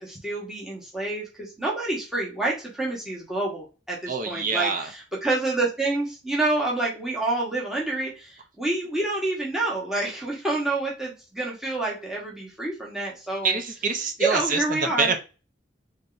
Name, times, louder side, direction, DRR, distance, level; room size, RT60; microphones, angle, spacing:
voice 1, 0.0-4.9 5.2-13.6 14.2-15.1, right 2 dB, 5° right, -4 dB, 1.1 m, -28 dB
voice 2, 4.1-4.9 13.4-15.2, right 4 dB, 50° right, 6 dB, 0.6 m, -26 dB
3.3 x 2.7 x 3.9 m, 0.32 s
head